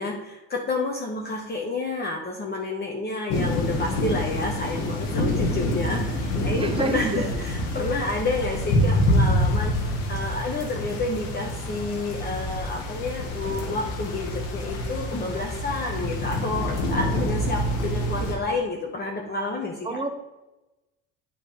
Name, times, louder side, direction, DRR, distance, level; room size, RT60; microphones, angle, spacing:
voice 1, 0.0-20.0, left 2 dB, 30° left, 0 dB, 1.1 m, -30 dB
sound 1, 3.3-18.3, left 1 dB, 80° left, 1.6 m, -26 dB
voice 2, 6.6-7.3 19.8-20.1, right 2 dB, 15° right, 6 dB, 0.8 m, -28 dB
9.1 x 3.5 x 5.1 m, 1.0 s
supercardioid pair, 95°, 33 cm